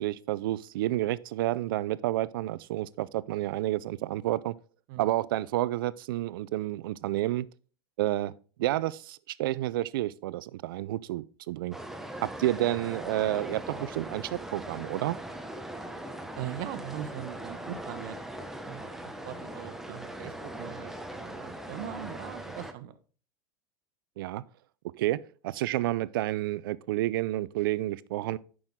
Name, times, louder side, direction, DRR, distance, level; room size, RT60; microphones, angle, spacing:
voice 1, 0.0-4.5 5.0-7.5 8.0-8.3 8.6-11.7 12.2-15.2 24.2-24.4 25.0-28.4, right 15 dB, 80° right, 0.5 m, -30 dB
sound 1, 11.7-22.7, right 1 dB, 5° right, 1.0 m, -40 dB
voice 2, 16.3-18.8 19.2-23.0, right 12 dB, 65° right, 1.0 m, -41 dB
9.0 x 6.2 x 3.7 m
supercardioid pair, 110°, 11 cm